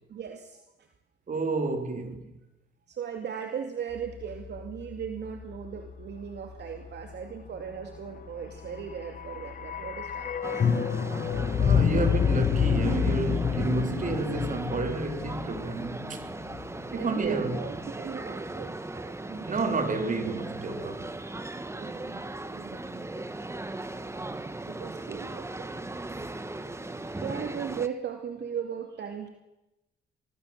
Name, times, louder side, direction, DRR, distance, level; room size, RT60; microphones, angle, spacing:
voice 1, 0.1-0.9 2.9-10.7 11.9-12.0 17.0-19.4 21.8-22.3 22.5-23.3 24.7-25.7 26.1-26.2 26.6-26.7 27.0-29.3, right 7 dB, 60° right, 2.6 m, -38 dB
voice 2, 1.3-2.2 11.6-16.2 16.9-17.5 19.3-21.1, right 3 dB, 40° right, 4.4 m, -30 dB
sound 1, 3.9-10.4, left 6 dB, 75° left, 5.3 m, -48 dB
sound 2, 8.9-17.0 17.3-17.4, left 7 dB, 45° left, 1.4 m, -28 dB
sound 3, 10.4-27.9, right 2 dB, 15° right, 1.6 m, -38 dB
25.5 x 20.0 x 7.6 m
cardioid pair, 90°, 20 cm